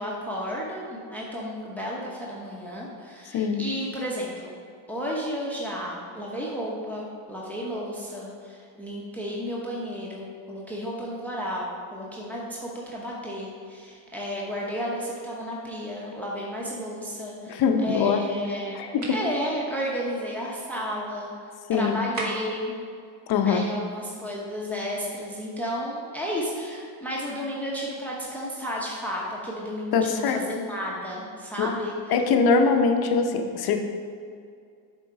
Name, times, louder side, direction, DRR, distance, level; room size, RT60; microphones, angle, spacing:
voice 1, 0.0-4.6 4.9-21.3 21.7-22.7 23.4-31.9, equal, 5° left, -4 dB, 0.9 m, -32 dB
voice 2, 17.5-18.2 18.7-19.2 21.7-22.0 23.3-23.7 29.9-30.4 31.6-31.7 32.1-33.8, left 5 dB, 50° left, 5 dB, 0.8 m, -22 dB
sound 1, 19.0-19.3 22.1-22.6, right 2 dB, 35° right, 1.4 m, -34 dB
7.2 x 3.8 x 4.7 m, 2.2 s
supercardioid pair, 95°, 49 cm